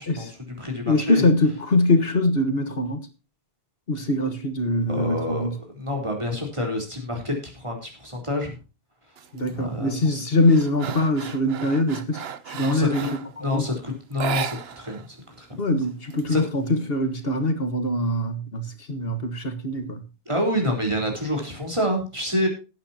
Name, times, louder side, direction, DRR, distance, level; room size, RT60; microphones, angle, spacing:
voice 1, 0.0-1.3 4.9-8.6 9.5-10.2 12.6-13.1 13.4-15.5 16.3-16.4 20.3-22.5, left 1 dB, 30° right, 4.0 m, -28 dB
voice 2, 0.9-3.0 3.9-5.5 9.3-13.1 13.4-13.7 15.6-20.0, left 2 dB, 70° left, 1.7 m, -23 dB
sound 1, 9.2-9.5 9.9-13.4 14.1-15.1 15.3-15.4 15.8-16.8, right 8 dB, 75° right, 1.0 m, -34 dB
18.5 x 8.8 x 2.9 m
omnidirectional pair, 1.0 m